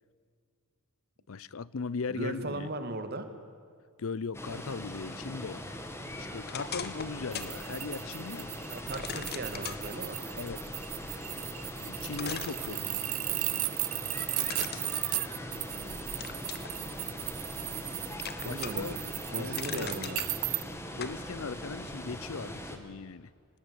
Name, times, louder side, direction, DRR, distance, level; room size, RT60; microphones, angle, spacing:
voice 1, 1.3-2.7 4.0-5.8 6.1-8.5 10.4-10.6 11.8-12.8 18.4-19.0 19.3-19.9 21.0-23.3, left 4 dB, 65° left, 21 dB, 0.6 m, -38 dB
voice 2, 2.1-3.3 8.7-10.2 12.6-12.9 15.7-16.3 18.4-19.0 19.3-20.3, right 2 dB, 45° right, 9 dB, 2.3 m, -38 dB
Water, 4.3-22.8, left 1 dB, 10° left, 2.1 m, -41 dB
sound 1, 6.5-7.6 8.0-8.1 8.9-9.8 11.6-11.7 12.1-13.2 14.5-15.7 16.2-16.7 17.2-17.9 18.2-18.9 19.3-20.3 21.0-21.2, left 7 dB, 45° left, 1.5 m, -40 dB
sound 2, 7.3-20.6, right 20 dB, 75° right, 0.6 m, -36 dB
25.5 x 19.0 x 9.8 m, 2.2 s
head